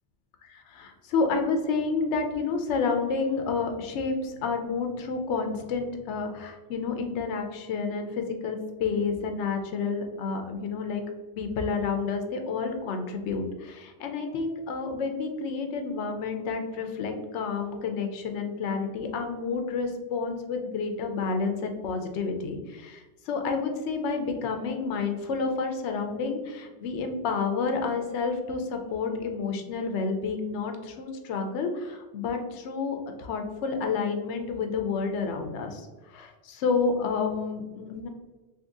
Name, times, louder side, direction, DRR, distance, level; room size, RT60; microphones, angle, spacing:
voice 1, 0.4-11.0 11.4-38.1, left 4 dB, 85° left, 5 dB, 0.9 m, -30 dB
2.8 x 2.7 x 3.5 m, 1.2 s
omnidirectional pair, 1.1 m